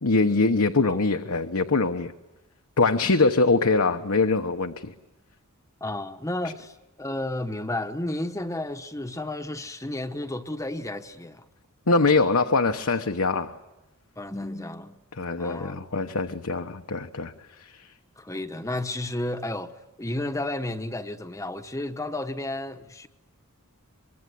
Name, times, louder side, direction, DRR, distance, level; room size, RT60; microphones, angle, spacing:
voice 1, 0.0-2.1 2.8-4.9 11.9-13.5 15.2-17.9, left 3 dB, 70° left, 1.1 m, -23 dB
voice 2, 5.8-11.4 14.2-14.9 15.4-15.9 18.2-19.7 20.0-23.1, left 1 dB, 15° left, 1.1 m, -32 dB
24.0 x 24.0 x 9.5 m
head